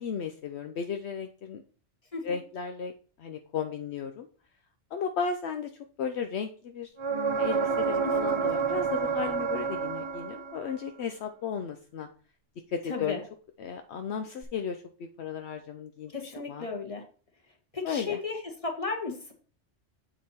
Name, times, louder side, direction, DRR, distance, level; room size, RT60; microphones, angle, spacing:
voice 1, 0.0-1.6 2.2-2.9 3.2-4.3 4.9-5.7 6.0-12.1 12.7-13.2 13.6-14.8 15.2-16.7 17.8-18.2, left 6 dB, 70° left, 6 dB, 0.9 m, -34 dB
sound 1, 7.0-10.7 14.4-14.5, right 5 dB, 30° right, 0.7 m, -29 dB
voice 2, 12.9-13.2 16.1-17.0 17.7-19.3, left 4 dB, 30° left, 1 dB, 1.6 m, -34 dB
8.0 x 5.2 x 4.2 m, 0.41 s
omnidirectional pair, 1.2 m